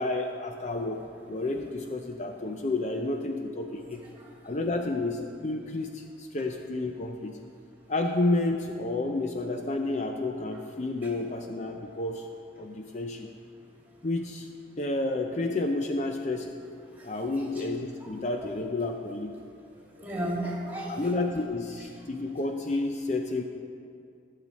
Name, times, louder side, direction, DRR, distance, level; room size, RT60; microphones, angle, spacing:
voice 1, 0.0-4.0 4.4-7.4 7.9-12.3 12.6-13.3 14.0-14.5 14.8-16.5 17.0-19.4 20.9-23.4, left 2 dB, 40° left, 4 dB, 0.5 m, -30 dB
voice 2, 17.0-17.5 18.4-18.5 20.0-21.1, right 1 dB, 10° right, -4 dB, 2.5 m, -34 dB
18.0 x 7.4 x 4.1 m, 2.5 s
head